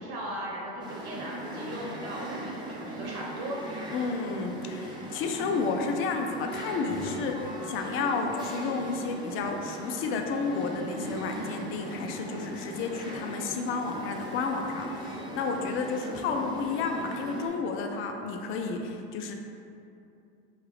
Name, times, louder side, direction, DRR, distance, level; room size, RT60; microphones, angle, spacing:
voice 1, 0.0-3.6, right 1 dB, 70° right, -5 dB, 1.2 m, -37 dB
sound 1, 0.8-17.5, right 1 dB, 15° right, 0.6 m, -39 dB
voice 2, 3.9-19.3, left 4 dB, 40° left, 3 dB, 0.4 m, -31 dB
4.5 x 2.3 x 3.3 m, 2.6 s
supercardioid pair, 110°, 32 cm